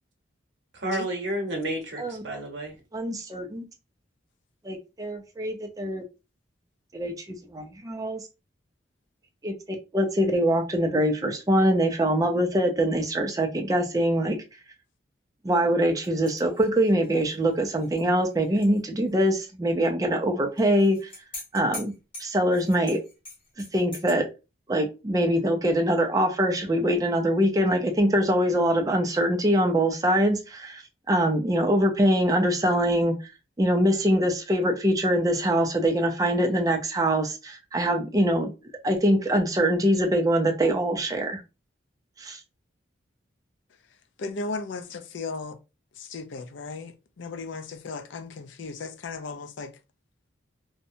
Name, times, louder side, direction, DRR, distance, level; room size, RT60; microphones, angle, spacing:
voice 1, 0.7-2.8, right 1 dB, 70° right, 0.8 m, -31 dB
voice 2, 2.9-3.6 4.6-6.0 6.9-8.2 9.4-9.6 9.9-14.4 15.4-21.1 21.5-21.9 22.2-23.0 23.7-24.3 24.7-30.8 31.1-33.2 33.6-38.5 38.8-41.4 42.2-42.4, right 1 dB, 20° right, 0.4 m, -23 dB
sound 1, 16.0-18.8 19.1-19.2 20.6-24.2, left 2 dB, 30° left, 1.0 m, -44 dB
voice 3, 44.2-45.6 46.0-49.7, left 3 dB, 80° left, 0.4 m, -35 dB
2.7 x 2.1 x 2.6 m
head